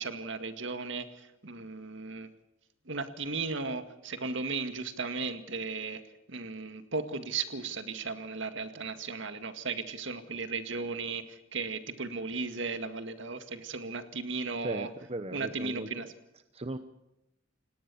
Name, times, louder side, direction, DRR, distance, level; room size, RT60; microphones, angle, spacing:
voice 1, 0.0-2.3 2.9-6.0 6.3-14.9 15.3-16.1, right 4 dB, 65° right, 9 dB, 2.0 m, -36 dB
voice 2, 14.6-16.8, right 2 dB, 30° right, 10 dB, 0.9 m, -38 dB
29.0 x 18.0 x 7.1 m, 0.91 s
head